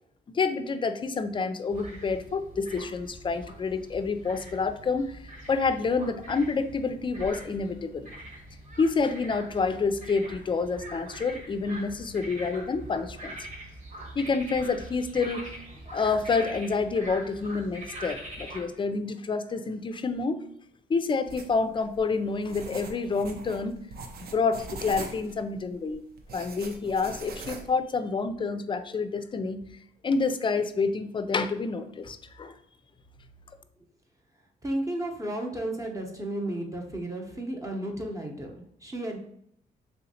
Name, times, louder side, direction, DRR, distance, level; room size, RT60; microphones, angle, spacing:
voice 1, 0.3-8.1 8.8-13.4 14.2-15.5 15.9-20.4 20.9-23.8 24.3-26.0 26.3-29.6 30.0-32.5, left 4 dB, 30° left, 10 dB, 0.4 m, -28 dB
sound 1, 1.7-18.7, right 1 dB, 50° right, 1.2 m, -43 dB
sound 2, 21.3-27.7, right 3 dB, 65° right, 0.6 m, -42 dB
voice 2, 34.6-39.2, right 1 dB, 20° right, 1 dB, 0.8 m, -33 dB
3.5 x 2.8 x 2.7 m, 0.70 s
supercardioid pair, 65°, 17 cm